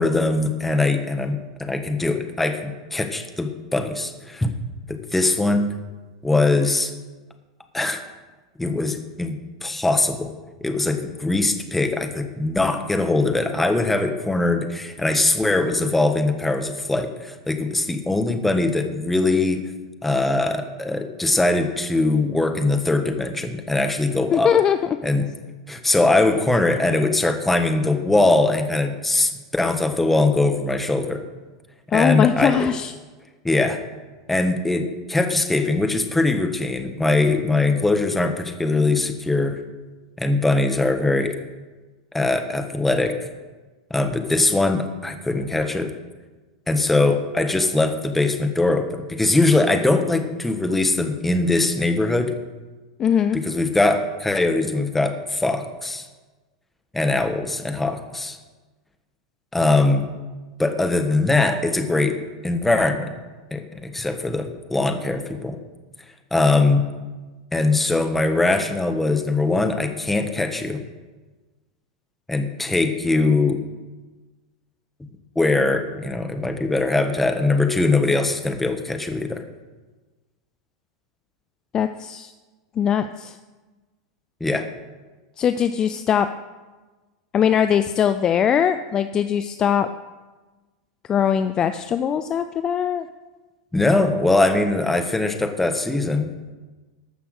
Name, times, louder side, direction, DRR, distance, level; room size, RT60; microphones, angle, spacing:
voice 1, 0.0-4.5 4.9-5.7 6.2-6.9 7.7-8.0 8.6-10.3 10.6-19.7 20.0-24.5 25.0-25.3 25.7-31.2 31.9-32.7 33.4-33.8 34.3-39.6 40.2-41.4 42.1-43.2 43.9-45.9 46.7-52.4 53.3-56.1 56.9-58.4 59.5-60.1 60.6-63.1 63.5-65.6 66.3-66.9 67.5-70.8 72.3-73.6 75.3-79.4 84.4-84.7 93.7-96.3, left 2 dB, 5° left, 6 dB, 1.3 m, -21 dB
voice 2, 24.3-24.8 31.9-32.9 53.0-53.4 81.7-82.3 82.8-83.4 85.4-86.3 87.3-89.9 91.1-93.1, left 8 dB, 30° left, 10 dB, 0.5 m, -21 dB
13.5 x 6.0 x 6.6 m, 1.3 s
hypercardioid pair, 95°, 2 cm